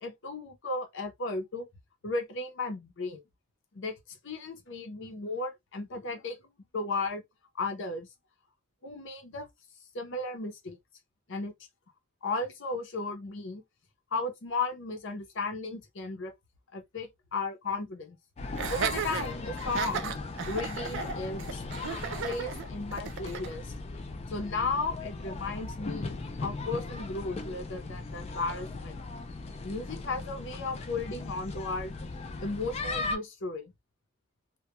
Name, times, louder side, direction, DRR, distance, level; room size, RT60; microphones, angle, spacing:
voice 1, 0.0-1.7 2.0-3.2 3.7-3.9 4.2-6.4 6.7-7.2 7.6-8.1 8.8-9.5 9.9-10.8 11.3-11.5 12.2-13.6 14.1-16.3 16.7-18.2 18.7-20.1 20.5-21.6 22.2-23.7 24.3-26.1 26.4-29.0 29.6-31.9 32.4-33.7, left 3 dB, 60° left, 0.7 m, -35 dB
sound 1, 18.4-33.2, left 3 dB, 30° left, 0.3 m, -38 dB
Laughter, 18.6-23.5, right 7 dB, 60° right, 0.3 m, -35 dB
2.2 x 2.2 x 2.8 m
head